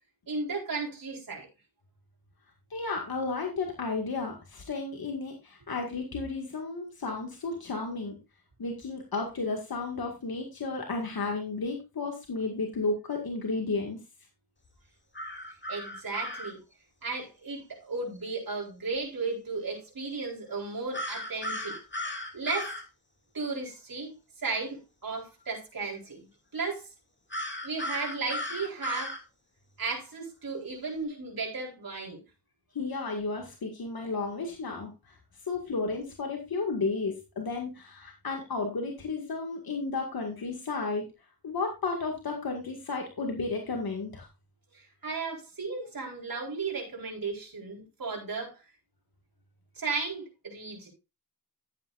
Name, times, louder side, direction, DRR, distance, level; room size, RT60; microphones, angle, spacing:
voice 1, 0.3-1.5 15.7-16.6 17.0-21.8 22.3-22.7 23.3-24.1 24.4-26.3 26.5-26.8 27.6-29.2 29.8-32.2 44.7-48.6 49.8-50.9, right 4 dB, 70° right, 4.3 m, -35 dB
voice 2, 2.7-8.1 8.6-14.0 32.7-35.1 35.5-41.1 41.4-44.3, left 3 dB, 85° left, 2.0 m, -33 dB
sound 1, 15.2-16.5 20.9-22.8 27.3-29.2, left 1 dB, 30° left, 2.5 m, -35 dB
13.0 x 8.8 x 2.5 m
wide cardioid pair, 65°, 36 cm